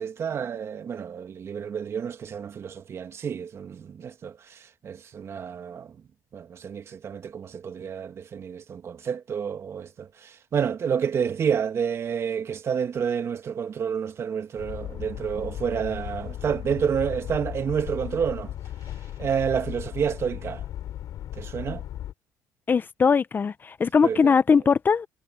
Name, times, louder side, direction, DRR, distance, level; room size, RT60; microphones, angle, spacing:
voice 1, 0.0-4.4 4.8-5.9 6.3-10.1 10.5-18.5 19.2-20.6 21.4-21.8 24.0-24.3, right 7 dB, 45° right, 2.2 m, -29 dB
sound 1, 14.6-22.1, left 12 dB, 65° left, 3.5 m, -36 dB
voice 2, 22.7-25.1, left 5 dB, 30° left, 0.7 m, -20 dB
cardioid pair, 105°, 7 cm